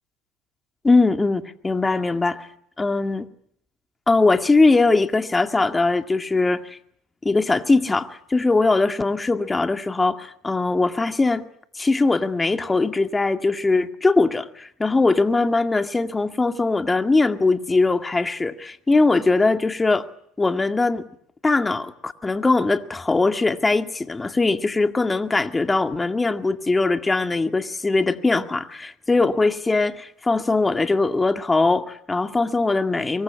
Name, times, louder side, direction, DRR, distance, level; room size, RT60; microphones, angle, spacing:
voice 1, 0.8-2.5 2.8-3.3 4.1-6.8 7.2-11.4 11.8-20.1 20.4-21.0 21.4-33.2, left 3 dB, 15° left, 2.1 m, -21 dB
25.0 x 23.5 x 9.6 m
hypercardioid pair, 75°, 0 cm